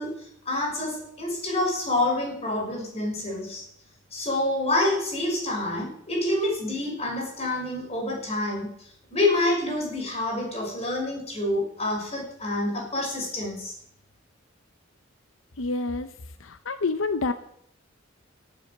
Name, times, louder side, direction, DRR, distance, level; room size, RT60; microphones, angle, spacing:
voice 1, 0.0-3.6 4.1-8.7 9.1-13.7, left 1 dB, 30° left, -1 dB, 6.1 m, -27 dB
voice 2, 15.6-16.1 16.4-17.3, left 3 dB, 90° left, 10 dB, 0.8 m, -27 dB
18.0 x 7.8 x 6.7 m, 0.68 s
head